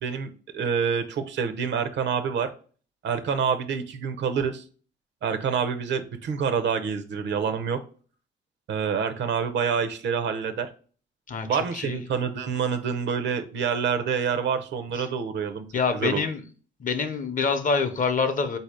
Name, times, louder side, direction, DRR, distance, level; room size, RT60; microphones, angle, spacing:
voice 1, 0.0-2.5 3.0-4.6 5.2-7.8 8.7-10.7 11.5-15.7 15.9-16.2, right 6 dB, 65° right, 9 dB, 0.6 m, -27 dB
voice 2, 11.3-12.0 15.0-15.1 15.7-16.4 16.8-18.6, left 5 dB, 40° left, 8 dB, 0.7 m, -26 dB
4.0 x 2.7 x 4.8 m, 0.41 s
cardioid pair, 90°, 20 cm